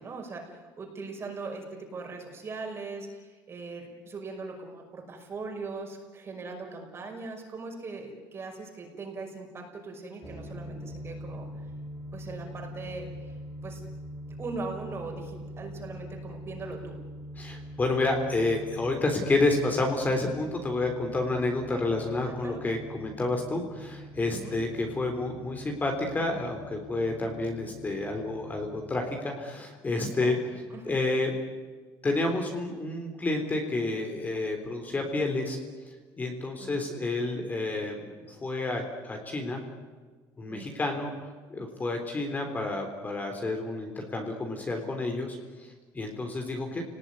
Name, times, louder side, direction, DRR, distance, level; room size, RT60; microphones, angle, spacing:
voice 1, 0.0-11.5 12.1-13.8 14.3-17.0 22.3-22.6 24.3-24.6 29.9-30.4 30.7-30.9 36.6-36.8 40.5-40.7, right 3 dB, 30° right, 2 dB, 5.7 m, -40 dB
sound 1, 10.2-29.2, equal, 10° right, 2.1 m, -43 dB
voice 2, 17.4-30.4 30.9-31.3 32.0-35.6 36.2-38.0 38.3-39.6 40.4-41.1 41.5-46.8, left 2 dB, 20° left, 3 dB, 3.5 m, -29 dB
29.5 x 19.0 x 9.7 m, 1.4 s
cardioid pair, 135°, 9 cm